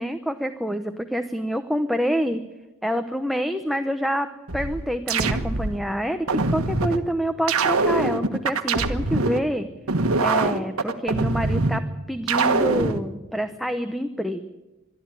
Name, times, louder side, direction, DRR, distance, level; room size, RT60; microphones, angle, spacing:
voice 1, 0.0-2.4 2.8-9.7 10.2-11.8 12.1-14.4, equal, ahead, 7 dB, 0.8 m, -27 dB
sound 1, 4.5-5.8 6.3-7.0 7.5-9.4 9.9-11.8 12.3-13.0, right 3 dB, 75° right, 1.4 m, -23 dB
22.5 x 13.0 x 9.0 m, 1.1 s
head